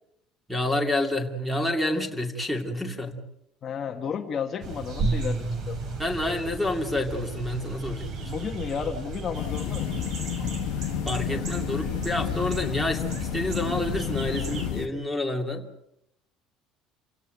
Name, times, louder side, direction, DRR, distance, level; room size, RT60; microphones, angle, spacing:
voice 1, 0.5-3.2 6.0-8.3 11.1-15.7, left 1 dB, ahead, 4 dB, 2.6 m, -28 dB
voice 2, 3.6-6.0 8.2-9.9, left 7 dB, 30° left, 2 dB, 1.5 m, -33 dB
sound 1, 4.6-14.7, right 3 dB, 40° right, 3.8 m, -34 dB
sound 2, 9.3-14.9, left 13 dB, 80° left, 1.5 m, -31 dB
28.5 x 17.0 x 8.0 m, 0.81 s
cardioid pair, 175°, 0 cm